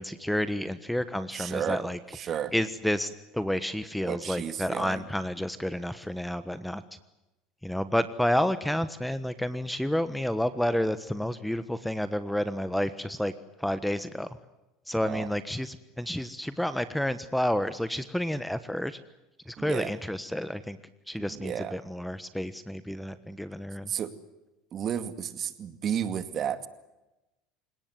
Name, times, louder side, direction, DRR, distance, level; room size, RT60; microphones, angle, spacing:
voice 1, 0.0-2.0 2.5-6.8 7.6-13.3 13.6-14.3 14.9-19.0 19.5-20.8 21.1-23.9, equal, 5° left, 13 dB, 1.3 m, -30 dB
voice 2, 1.3-1.8 2.1-2.5 4.0-5.0 15.0-15.3 19.6-19.9 21.2-21.8 23.8-24.1 24.7-26.7, right 9 dB, 40° right, 11 dB, 2.3 m, -32 dB
28.0 x 18.5 x 9.6 m, 1.0 s
supercardioid pair, 105°, 0 cm